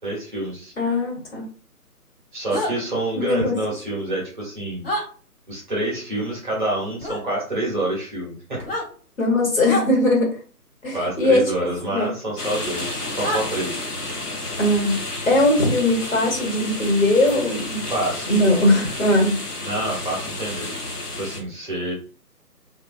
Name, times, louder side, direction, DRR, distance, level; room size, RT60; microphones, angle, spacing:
voice 1, 0.0-0.7 2.3-4.9 5.5-8.6 10.9-13.8 17.9-18.3 19.6-20.7 21.2-21.9, right 1 dB, 30° right, -4 dB, 1.0 m, -27 dB
voice 2, 0.8-1.4 3.1-3.5 9.2-10.3 10.8-11.5 11.8-12.1 14.6-17.9 18.3-19.4, left 1 dB, 60° left, -1 dB, 1.2 m, -20 dB
sound 1, 2.5-2.7 4.8-5.0 7.0-7.2 8.5-8.9 9.6-9.9 12.0-12.1 13.2-13.4, left 1 dB, 40° left, 1.0 m, -26 dB
sound 2, 12.4-21.4, left 2 dB, 80° left, 0.9 m, -31 dB
2.4 x 2.2 x 2.4 m, 0.40 s
figure-of-eight pair, 150°, 46 cm